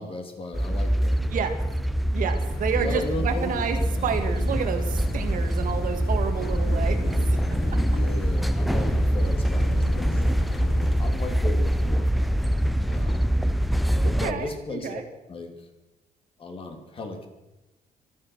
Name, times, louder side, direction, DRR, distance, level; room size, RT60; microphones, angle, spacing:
voice 1, 0.0-1.5 2.7-3.6 6.5-6.9 7.6-10.5 11.0-12.4 12.9-13.3 14.0-15.0 15.3-15.7 16.4-17.3, left 2 dB, 35° left, 4 dB, 2.8 m, -36 dB
sound 1, 0.5-14.3, equal, ahead, 0.5 m, -24 dB
voice 2, 2.1-7.4 7.7-7.8 14.0-15.0, right 7 dB, 60° right, 6 dB, 1.9 m, -30 dB
sound 2, 2.4-11.1, left 8 dB, 80° left, 1.2 m, -42 dB
25.0 x 8.8 x 6.3 m, 1.0 s
cardioid pair, 130°, 16 cm